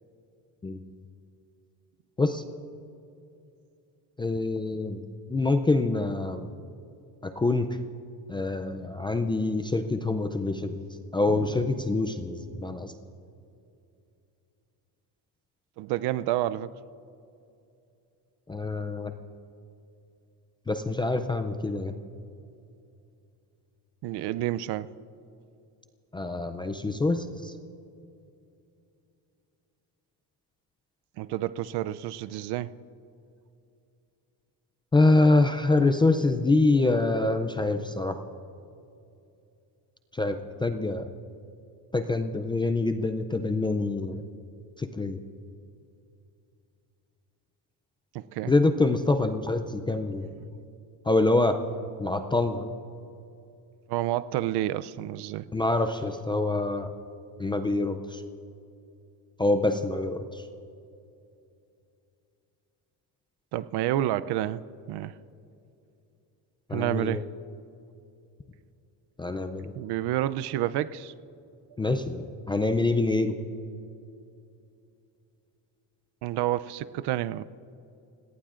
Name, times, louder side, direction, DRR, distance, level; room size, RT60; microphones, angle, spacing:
voice 1, 4.2-5.0 5.3-6.5 7.2-7.7 8.3-10.8 11.1-12.9 18.5-19.1 20.7-21.9 26.1-27.5 34.9-38.2 40.1-41.0 41.9-44.2 44.8-45.2 48.5-50.3 51.1-51.6 52.0-52.7 55.5-56.9 57.4-58.2 59.4-60.4 66.7-67.2 69.2-69.7 71.8-73.4, left 2 dB, 15° left, 6 dB, 0.3 m, -25 dB
voice 2, 11.3-11.9 15.8-16.7 24.0-24.9 31.2-32.7 48.1-48.5 53.9-55.5 63.5-64.6 64.9-65.1 66.7-67.3 69.7-71.1 76.2-77.4, right 13 dB, 65° right, 15 dB, 0.6 m, -29 dB
29.0 x 17.5 x 2.5 m, 2.6 s
cardioid pair, 150°, 43 cm